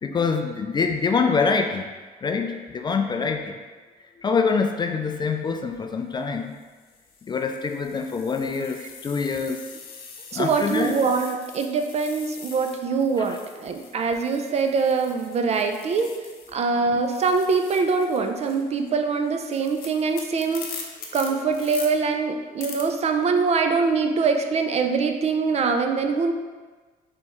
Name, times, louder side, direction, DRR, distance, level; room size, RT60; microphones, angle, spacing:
voice 1, 0.0-1.8 2.2-3.5 4.2-6.5 7.3-9.6 10.3-10.9, left 5 dB, 25° left, 5 dB, 0.3 m, -25 dB
sound 1, 5.5-5.8 6.5-16.7 17.0-21.9 22.6-22.8, left 5 dB, 60° left, 0.7 m, -43 dB
voice 2, 10.3-16.1 16.5-20.7 21.1-26.3, right 4 dB, 40° right, 5 dB, 0.4 m, -23 dB
3.5 x 3.1 x 4.3 m, 1.4 s
cardioid pair, 110°, 17 cm